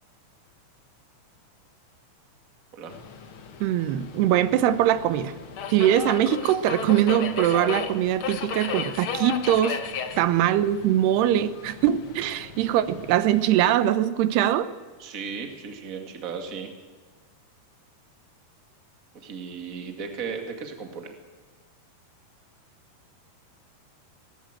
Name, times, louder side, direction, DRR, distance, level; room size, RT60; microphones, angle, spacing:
Subway metro underground, 2.9-13.4, left 6 dB, 90° left, 1.1 m, -35 dB
voice 1, 3.6-5.3 5.7-9.8 10.2-14.7, right 11 dB, 90° right, 13 dB, 3.0 m, -22 dB
voice 2, 15.0-16.7 19.1-21.1, right 5 dB, 30° right, 5 dB, 1.9 m, -36 dB
20.5 x 19.0 x 9.0 m, 1.4 s
omnidirectional pair, 4.6 m